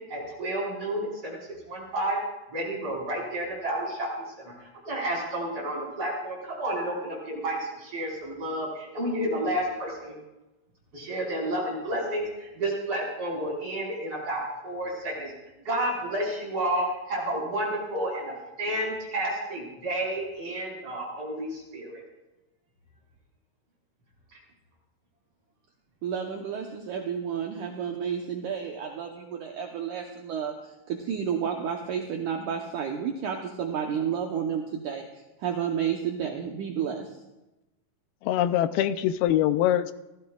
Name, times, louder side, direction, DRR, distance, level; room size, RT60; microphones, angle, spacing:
voice 1, 0.1-1.4 1.7-2.2 2.5-10.2 10.9-15.3 15.7-22.0, right 1 dB, 40° right, -4 dB, 5.5 m, -31 dB
voice 2, 26.0-30.5 30.9-35.1 35.4-37.1, right 7 dB, 70° right, 2 dB, 2.1 m, -31 dB
voice 3, 38.2-39.9, left 12 dB, 85° left, 12 dB, 2.5 m, -23 dB
29.5 x 15.5 x 2.4 m, 0.99 s
omnidirectional pair, 4.4 m